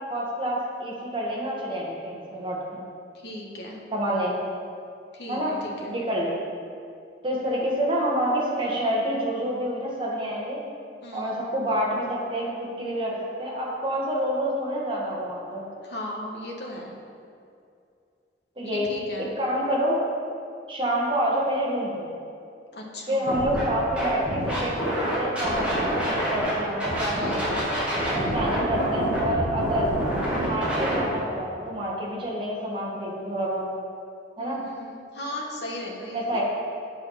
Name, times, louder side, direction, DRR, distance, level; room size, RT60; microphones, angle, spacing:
voice 1, 0.1-2.8 3.9-4.4 5.3-5.6 5.9-6.4 7.2-10.6 11.1-15.6 18.6-20.0 20.7-22.1 23.1-27.6 28.1-29.9 30.4-33.7 34.4-34.6 36.1-36.4, equal, 30° right, -4 dB, 1.5 m, -28 dB
voice 2, 3.2-3.8 5.1-6.0 11.0-11.4 15.8-16.9 18.7-19.3 22.7-23.3 27.1-27.6 34.4-36.4, left 1 dB, 65° left, -1 dB, 1.2 m, -37 dB
Scratching (performance technique), 23.3-23.6 24.0-26.5 26.8-31.0, equal, 5° right, 2.0 m, -27 dB
8.4 x 4.9 x 5.5 m, 2.5 s
head